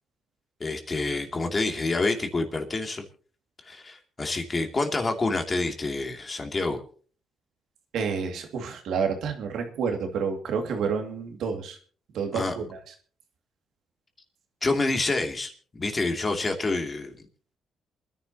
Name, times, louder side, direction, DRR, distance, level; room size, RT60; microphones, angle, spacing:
voice 1, 0.6-3.0 3.6-6.8 12.3-12.5 14.6-17.2, left 3 dB, 30° left, 4 dB, 2.6 m, -27 dB
voice 2, 7.9-11.8 12.1-12.8, right 6 dB, 75° right, 4 dB, 2.3 m, -29 dB
27.5 x 10.5 x 2.9 m, 0.42 s
cardioid pair, 90°, 0 cm